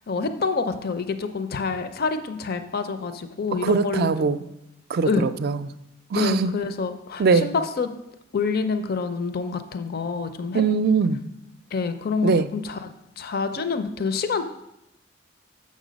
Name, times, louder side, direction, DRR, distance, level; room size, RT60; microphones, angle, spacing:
voice 1, 0.0-4.1 5.1-5.3 6.1-7.9 8.3-10.6 11.7-12.9 13.2-14.4, left 4 dB, 55° left, 9 dB, 0.5 m, -27 dB
voice 2, 3.6-4.4 4.9-5.6 6.1-6.5 7.2-7.5 10.5-11.2 12.2-12.5, right 5 dB, 55° right, 14 dB, 0.4 m, -21 dB
7.1 x 6.5 x 5.1 m, 0.85 s
head